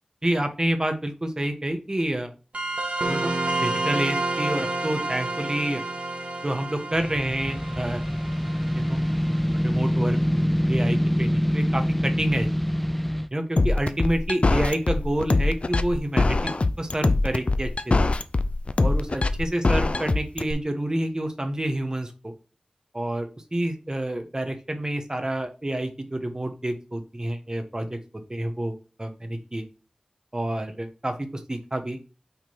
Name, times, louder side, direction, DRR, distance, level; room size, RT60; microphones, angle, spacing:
voice 1, 0.2-2.3 3.1-3.4 3.6-5.8 6.4-8.0 8.7-9.0 9.5-10.2 10.7-12.5 13.3-18.0 18.8-22.3 22.9-29.7 30.3-32.0, right 1 dB, 30° right, 6 dB, 1.2 m, -28 dB
sound 1, 2.5-9.6, right 2 dB, 80° right, 1.3 m, -30 dB
sound 2, 6.9-13.3, equal, 5° left, 0.4 m, -25 dB
sound 3, 13.6-20.5, left 2 dB, 60° left, 0.5 m, -22 dB
5.7 x 3.8 x 4.3 m, 0.34 s
wide cardioid pair, 55°, 2 cm